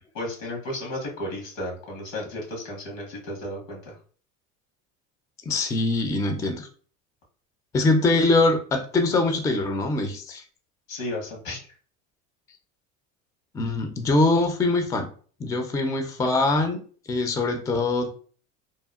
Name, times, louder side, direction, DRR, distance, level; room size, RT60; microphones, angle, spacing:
voice 1, 0.1-3.9 10.9-11.6, left 1 dB, 90° left, 0 dB, 1.3 m, -33 dB
voice 2, 5.5-6.7 7.7-10.4 13.5-15.1 15.4-16.8 17.1-18.1, left 2 dB, 10° left, 5 dB, 0.3 m, -23 dB
2.9 x 2.2 x 2.3 m, 0.42 s
supercardioid pair, 90°, 39 cm